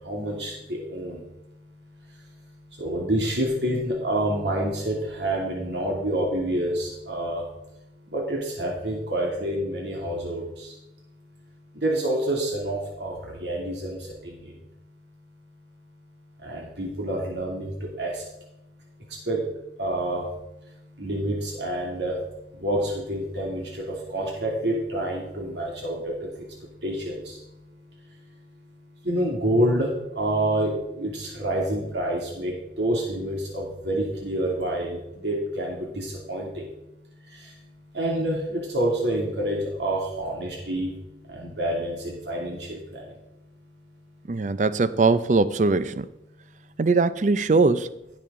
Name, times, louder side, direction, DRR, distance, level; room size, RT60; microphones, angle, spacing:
voice 1, 0.1-1.2 2.8-7.4 8.1-10.4 11.8-14.0 16.4-18.1 19.3-19.4 19.8-20.2 21.0-22.1 22.6-23.7 24.1-26.0 26.8-27.2 29.0-29.9 30.2-30.7 31.0-32.5 32.8-35.0 35.2-36.5 37.9-40.9 41.3-42.8, right 1 dB, 85° right, 2.6 m, -27 dB
voice 2, 44.3-46.1 46.8-47.9, right 3 dB, 45° right, 0.5 m, -21 dB
15.5 x 7.1 x 3.7 m
head